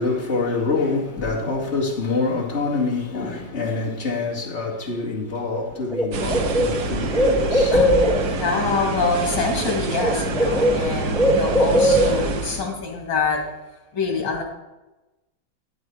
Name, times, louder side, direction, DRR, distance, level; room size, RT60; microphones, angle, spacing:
voice 1, 0.0-8.0, left 3 dB, 40° left, 2.6 m, -26 dB
Bird, 5.5-5.6 5.9-8.4 9.5-9.7 10.0-12.4, equal, ahead, 0.6 m, -20 dB
sound 1, 6.1-12.6, right 3 dB, 65° right, 1.5 m, -27 dB
voice 2, 7.7-13.5 13.9-14.4, left 4 dB, 85° left, 2.9 m, -25 dB
12.5 x 9.7 x 4.7 m
omnidirectional pair, 1.9 m